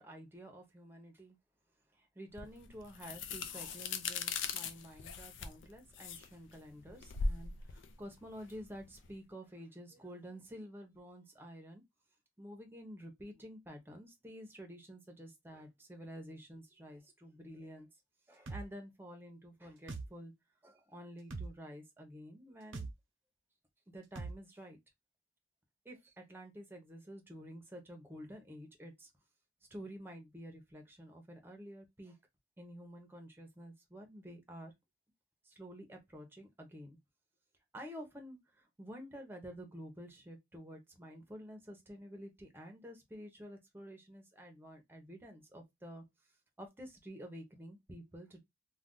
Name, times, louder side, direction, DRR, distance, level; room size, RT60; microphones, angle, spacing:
voice 1, 0.0-1.4 1.9-11.8 12.4-17.9 18.3-20.3 20.6-22.9 23.9-24.8 25.8-29.1 29.7-32.2 32.6-34.7 35.4-37.0 37.7-46.0 46.6-48.4, equal, 10° right, 0.7 m, -50 dB
sound 1, 2.4-9.1, left 4 dB, 70° left, 0.4 m, -40 dB
sound 2, 18.5-18.7 19.9-20.1 21.3-21.5 22.7-22.9 24.2-24.4, right 3 dB, 85° right, 0.7 m, -41 dB
2.4 x 2.3 x 3.7 m
head